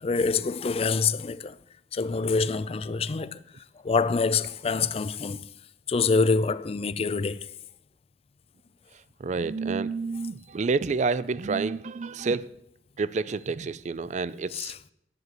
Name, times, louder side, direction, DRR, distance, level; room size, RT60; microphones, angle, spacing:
voice 1, 0.0-1.5 1.9-3.4 3.8-5.5 5.9-7.4 14.5-14.8, left 4 dB, 35° left, 0.4 m, -26 dB
voice 2, 9.2-12.5 13.0-14.7, right 4 dB, 40° right, 0.4 m, -29 dB
10.5 x 7.9 x 7.6 m
head